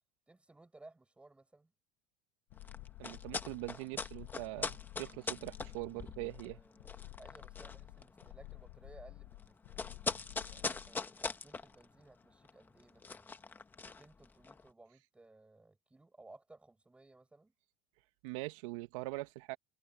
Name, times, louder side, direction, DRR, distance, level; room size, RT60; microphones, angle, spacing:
voice 1, 0.3-1.7 6.3-13.3 13.8-17.5, right 2 dB, 5° right, 8.0 m, -60 dB
sound 1, 2.5-11.0, left 19 dB, 50° left, 0.8 m, -52 dB
sound 2, 2.5-14.7, left 4 dB, 10° left, 1.1 m, -43 dB
voice 2, 3.0-6.6 18.2-19.6, right 21 dB, 65° right, 1.1 m, -42 dB
cardioid pair, 170°, 18 cm